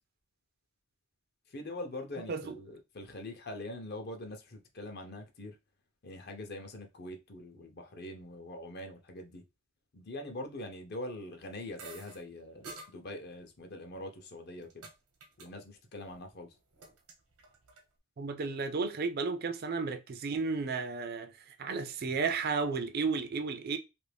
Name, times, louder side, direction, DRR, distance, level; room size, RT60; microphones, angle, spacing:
voice 1, 1.5-5.6 6.0-9.4 9.9-14.9 15.4-16.5, left 1 dB, 45° left, 0.6 m, -43 dB
sound 1, 11.8-12.2 12.6-12.9 13.9-14.9 15.2-15.5 15.7-16.2 16.5-17.8, right 3 dB, 90° right, 0.9 m, -49 dB
voice 2, 18.2-23.8, right 4 dB, 45° right, 0.4 m, -33 dB
2.9 x 2.6 x 3.3 m
head